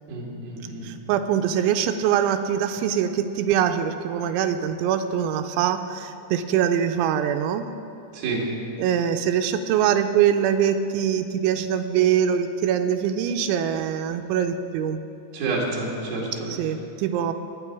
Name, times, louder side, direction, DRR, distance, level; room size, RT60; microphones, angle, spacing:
voice 1, 0.1-0.9 8.1-8.4 15.3-16.5, right 3 dB, 55° right, -3 dB, 3.7 m, -29 dB
voice 2, 0.8-7.7 8.8-15.0 16.5-17.3, right 9 dB, 85° right, 8 dB, 2.9 m, -23 dB
22.0 x 9.1 x 4.7 m, 2.6 s
omnidirectional pair, 5.4 m